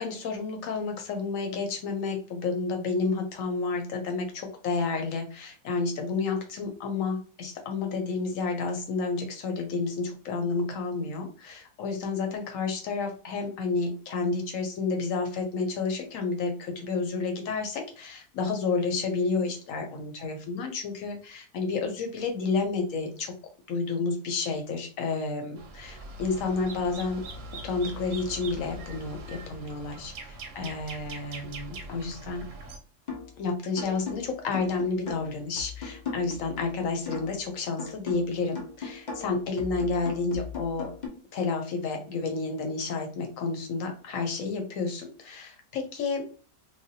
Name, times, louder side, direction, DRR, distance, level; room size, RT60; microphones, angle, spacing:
voice 1, 0.0-23.3 23.7-27.2 27.6-32.5 33.4-40.9 41.3-46.3, left 4 dB, 65° left, 4 dB, 0.9 m, -30 dB
sound 1, 25.6-32.8, right 2 dB, 65° right, 0.8 m, -42 dB
sound 2, 33.1-33.4 33.8-37.5 37.8-41.1, left 5 dB, 85° left, 0.4 m, -39 dB
3.2 x 2.2 x 2.7 m, 0.39 s
omnidirectional pair, 1.7 m